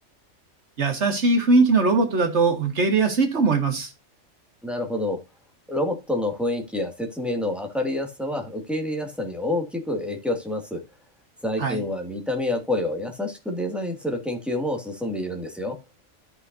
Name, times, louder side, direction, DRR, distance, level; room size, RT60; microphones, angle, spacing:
voice 1, 0.8-3.9 11.6-11.8, right 3 dB, 60° right, 2.1 m, -20 dB
voice 2, 4.6-5.2 5.7-10.8 11.4-15.8, left 1 dB, ahead, 2.0 m, -28 dB
13.5 x 5.9 x 2.6 m
omnidirectional pair, 1.3 m